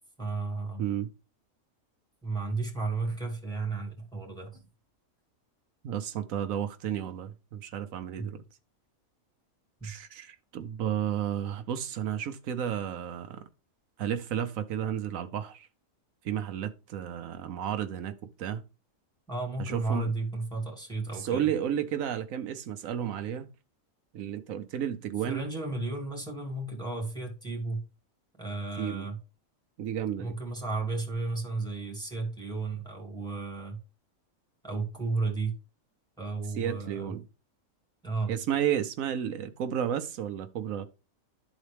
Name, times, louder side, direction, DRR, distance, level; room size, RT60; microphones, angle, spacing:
voice 1, 0.2-0.8 2.2-4.6 8.2-8.3 9.8-9.9 19.3-21.5 25.3-27.8 28.4-29.2 30.2-33.8 34.6-35.5 36.2-37.1 38.0-38.3, right 3 dB, 5° left, 2.2 m, -33 dB
voice 2, 0.8-1.1 5.8-8.4 9.8-13.4 14.0-15.7 16.2-18.6 19.6-20.1 21.1-23.5 24.1-25.5 28.8-29.1 29.8-30.3 36.6-37.3 38.3-40.9, right 9 dB, 80° right, 1.1 m, -32 dB
12.0 x 4.1 x 3.3 m
omnidirectional pair, 1.4 m